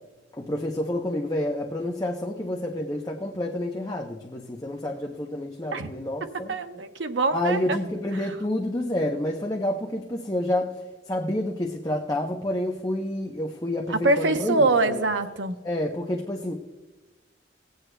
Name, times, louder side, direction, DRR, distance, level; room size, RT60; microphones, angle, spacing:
voice 1, 0.3-6.6 7.3-15.0 15.6-16.5, left 1 dB, 20° left, 0.7 m, -29 dB
voice 2, 6.2-7.8 8.1-8.3 13.9-15.6, right 2 dB, 80° right, 0.8 m, -24 dB
20.0 x 8.1 x 2.2 m
head